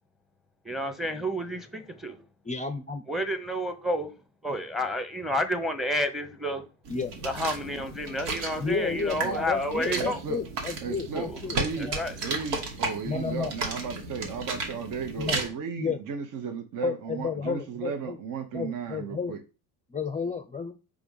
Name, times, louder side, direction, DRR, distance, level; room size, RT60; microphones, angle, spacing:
voice 1, 0.6-2.2 3.1-4.1 4.4-6.6 7.2-10.2 11.1-11.4 11.8-12.1, equal, ahead, 1.0 m, -30 dB
voice 2, 2.4-3.0 6.9-7.1 8.6-12.0 13.0-13.5 15.2-15.4 15.8-16.0 16.8-18.2 18.5-19.3 19.9-20.7, left 5 dB, 15° left, 0.6 m, -32 dB
sound 1, 6.8-15.5, right 3 dB, 70° right, 1.8 m, -34 dB
voice 3, 8.9-9.4 9.9-10.4 10.8-11.9 12.2-19.4, right 6 dB, 40° right, 1.0 m, -35 dB
4.8 x 3.6 x 5.5 m
hypercardioid pair, 70°, 47 cm